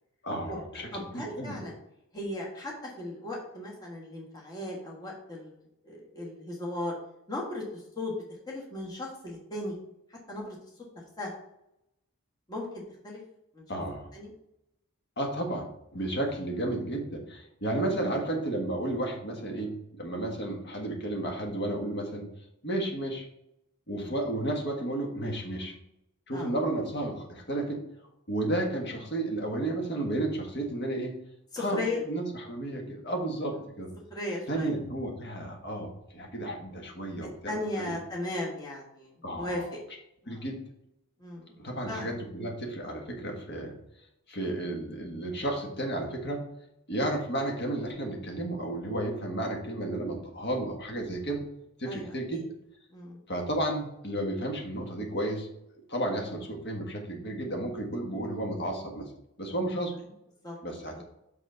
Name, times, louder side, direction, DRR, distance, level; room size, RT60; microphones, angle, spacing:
voice 1, 0.2-1.6 13.7-14.1 15.2-22.3 22.6-23.3 23.9-25.8 26.3-27.8 28.3-31.2 31.6-33.9 34.5-37.9 39.2-39.7 40.3-40.6 41.6-43.7 44.3-46.5 46.9-51.4 51.8-52.5 53.3-55.5 55.9-59.1 59.4-60.0 60.6-61.0, right 1 dB, 50° left, 1 dB, 1.6 m, -32 dB
voice 2, 0.9-1.7 2.1-5.6 5.8-7.0 7.3-8.1 8.5-9.7 10.1-10.6 11.2-11.3 12.5-13.2 13.5-13.6 14.1-14.3 16.0-16.1 20.2-20.3 24.0-24.1 26.3-26.5 31.5-32.0 34.1-34.7 37.2-39.6 40.2-40.4 41.2-41.5 41.9-42.1 44.4-44.6 51.8-52.4 52.9-53.2 60.4-60.6, left 1 dB, 20° left, -3 dB, 1.4 m, -37 dB
6.1 x 5.7 x 4.5 m, 0.81 s
head